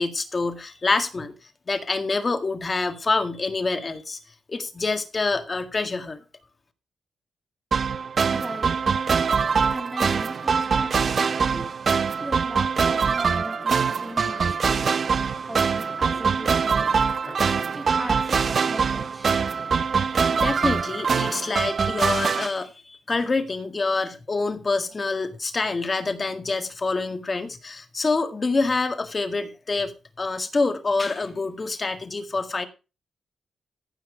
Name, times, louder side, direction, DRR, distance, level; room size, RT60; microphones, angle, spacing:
voice 1, 0.0-1.3 1.7-4.2 4.5-6.2 20.3-32.7, left 3 dB, 30° left, 1.8 m, -26 dB
sound 1, 7.7-22.5, right 5 dB, 50° right, 0.6 m, -23 dB
voice 2, 8.3-8.8 9.7-11.8 12.2-15.0 15.5-17.4 17.7-19.3, right 1 dB, 10° right, 2.1 m, -38 dB
sound 2, 12.7-12.8 13.2-17.7, left 2 dB, 15° left, 3.7 m, -47 dB
15.5 x 5.9 x 4.9 m
cardioid pair, 110°, 0 cm